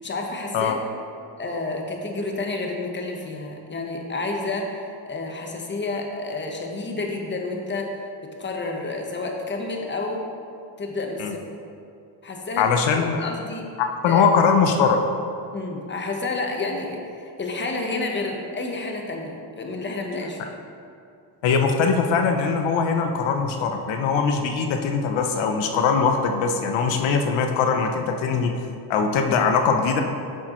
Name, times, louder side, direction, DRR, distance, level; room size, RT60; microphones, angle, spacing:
voice 1, 0.0-0.8 1.4-8.1 8.4-10.3 10.8-11.4 12.2-13.7 14.1-14.2 15.5-20.4, left 3 dB, 25° left, 1 dB, 1.0 m, -30 dB
voice 2, 12.6-13.3 13.8-15.0 21.4-28.5 28.9-30.0, left 5 dB, 85° left, 4 dB, 0.7 m, -21 dB
8.4 x 6.3 x 3.0 m, 2.4 s
cardioid pair, 95°, 44 cm